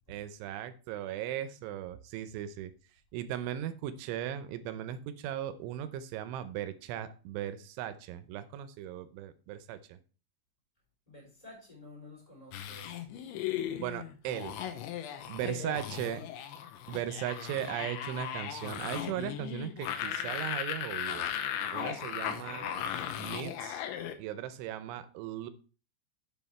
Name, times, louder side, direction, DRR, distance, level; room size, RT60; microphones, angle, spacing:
voice 1, 0.1-2.7 3.1-10.0 13.8-14.6 15.3-16.2 16.9-21.3 21.7-22.7 23.2-23.8 24.2-25.5, right 11 dB, 90° right, 3.2 m, -37 dB
voice 2, 11.1-13.3 15.4-16.4 16.6-16.8 22.3-22.9, left 1 dB, 10° left, 4.0 m, -51 dB
sound 1, 12.5-24.1, left 10 dB, 80° left, 3.2 m, -37 dB
7.9 x 7.5 x 4.2 m
omnidirectional pair, 5.3 m